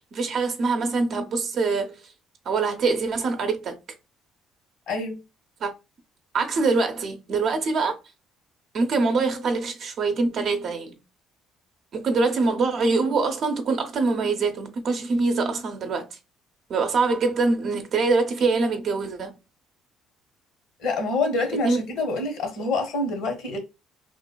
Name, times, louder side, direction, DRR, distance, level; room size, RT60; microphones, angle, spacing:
voice 1, 0.1-2.0 2.5-3.7 5.6-5.7 6.3-8.0 8.7-11.0 11.9-16.1 16.7-19.3 21.6-21.8, right 3 dB, 60° right, 0.6 m, -24 dB
voice 2, 4.9-5.2 20.8-23.6, left 3 dB, 75° left, 0.9 m, -26 dB
3.1 x 2.2 x 2.2 m
supercardioid pair, 70°, 0 cm